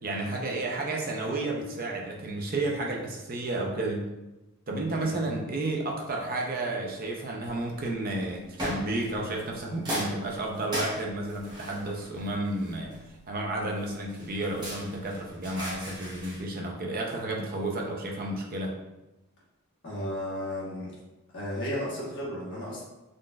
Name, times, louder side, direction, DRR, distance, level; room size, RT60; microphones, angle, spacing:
voice 1, 0.0-4.1 4.7-12.9 13.3-18.7, right 2 dB, 40° right, 0 dB, 0.5 m, -32 dB
voice 2, 4.9-5.3 19.8-20.9 21.3-22.8, left 1 dB, 55° left, -6 dB, 1.1 m, -34 dB
sound 1, 7.4-7.9 8.6-9.5 9.9-13.2 13.8-16.4, equal, 20° right, 0.9 m, -37 dB
3.8 x 2.5 x 2.2 m, 1.0 s
head